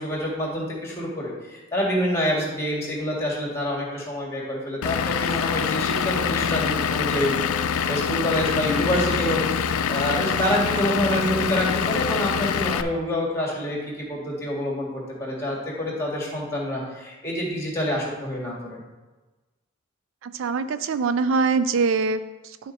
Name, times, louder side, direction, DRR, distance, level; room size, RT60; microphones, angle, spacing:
voice 1, 0.0-18.8, equal, 15° left, -3 dB, 2.1 m, -27 dB
Vehicle / Engine, 4.8-12.8, left 7 dB, 90° left, 0.4 m, -25 dB
voice 2, 20.2-22.7, right 4 dB, 65° right, 12 dB, 0.3 m, -24 dB
11.0 x 4.3 x 4.2 m, 1.2 s
head